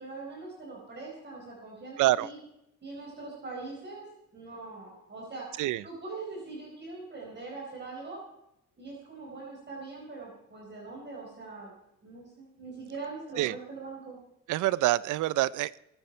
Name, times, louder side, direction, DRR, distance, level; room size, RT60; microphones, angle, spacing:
voice 1, 0.0-2.4 2.8-4.0 4.3-5.5 5.8-8.2 8.8-11.7 12.0-14.2, right 3 dB, 35° right, -2 dB, 4.5 m, -42 dB
voice 2, 2.0-2.3 5.6-5.8 13.4-13.5 14.5-15.8, right 16 dB, 85° right, 20 dB, 0.6 m, -26 dB
22.0 x 9.0 x 4.4 m, 0.87 s
cardioid pair, 90°, 30 cm